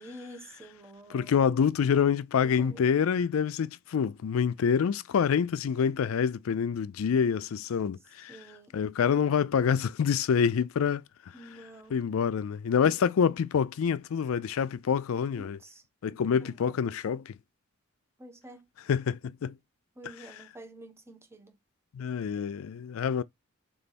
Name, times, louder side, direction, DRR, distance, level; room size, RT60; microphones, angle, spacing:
voice 1, 0.0-1.4 2.4-2.8 8.3-8.7 11.3-12.0 13.3-13.4 15.4-16.8 18.2-18.7 20.0-21.5, right 1 dB, 10° right, 1.2 m, -48 dB
voice 2, 1.1-8.4 8.7-11.0 11.9-15.6 16.0-17.3 18.9-19.5 21.9-23.2, left 7 dB, 75° left, 0.4 m, -26 dB
3.7 x 3.4 x 4.1 m
head